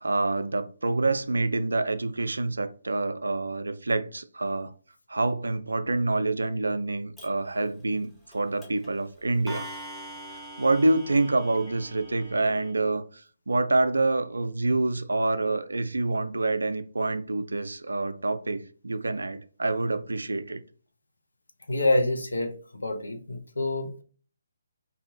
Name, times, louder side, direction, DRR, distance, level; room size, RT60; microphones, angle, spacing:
voice 1, 0.0-4.7 5.1-9.7 10.3-20.6, right 2 dB, 70° right, 0.3 m, -27 dB
Clock, 7.2-7.3 8.3-8.4 8.6-8.9 9.5-12.7, right 1 dB, 5° left, 0.5 m, -43 dB
voice 2, 21.7-24.0, left 2 dB, 70° left, 0.6 m, -27 dB
2.6 x 2.4 x 2.6 m
figure-of-eight pair, 140°, 0 cm